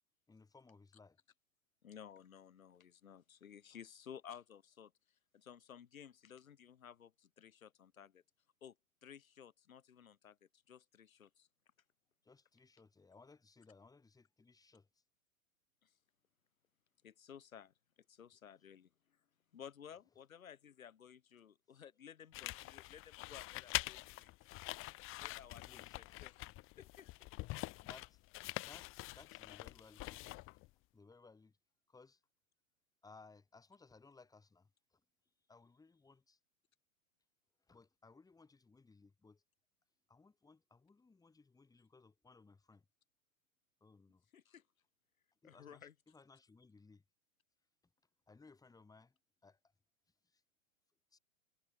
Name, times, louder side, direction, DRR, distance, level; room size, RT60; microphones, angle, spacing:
voice 1, 0.3-1.2 12.2-15.0 25.6-26.0 27.8-28.2 28.6-30.3 30.9-31.6 31.9-32.2 33.0-35.0 35.5-36.4 37.7-39.4 40.1-42.8 43.8-44.3 45.4-47.0 48.3-49.6 50.2-50.4 51.1-51.2, left 4 dB, 10° left, 4.1 m, -62 dB
voice 2, 1.8-8.2 8.6-8.8 9.0-11.5 15.8-15.9 17.0-17.7 18.1-19.2 19.5-24.3 24.9-26.4 26.8-27.3 44.3-44.6 45.4-45.9, left 8 dB, 70° left, 2.8 m, -56 dB
sound 1, 22.3-30.7, left 20 dB, 30° left, 1.6 m, -45 dB
figure-of-eight pair, 110°, 42 cm